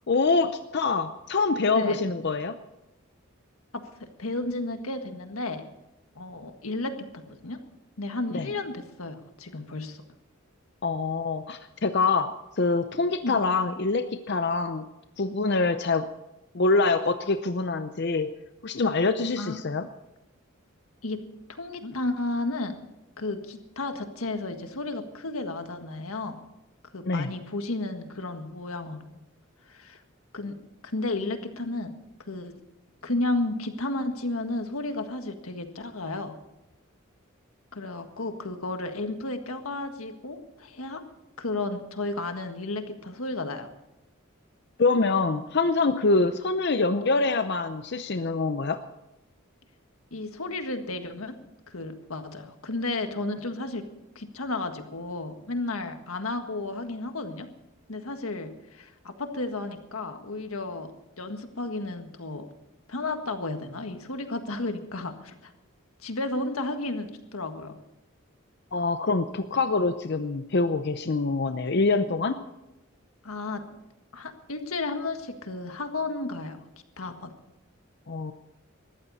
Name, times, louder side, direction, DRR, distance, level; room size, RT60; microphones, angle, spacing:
voice 1, 0.1-2.5 8.3-8.5 10.8-14.8 15.2-16.1 16.5-18.3 18.6-19.9 27.1-27.3 44.8-48.8 68.7-72.4 78.1-78.3, left 3 dB, 55° left, 9 dB, 0.7 m, -25 dB
voice 2, 4.2-5.6 6.2-7.6 8.0-10.0 13.2-13.4 19.4-19.5 21.0-21.2 21.5-22.7 23.2-26.4 26.9-29.2 29.7-30.0 30.3-30.6 30.8-32.0 32.3-32.5 33.0-36.4 37.7-41.0 41.4-43.7 50.1-51.4 51.7-53.8 54.2-57.5 57.9-60.9 61.2-62.4 62.9-65.5 66.0-67.8 73.2-73.6 74.1-76.6 77.0-77.3, left 2 dB, 90° left, 6 dB, 1.7 m, -33 dB
20.0 x 14.5 x 4.2 m, 0.95 s
head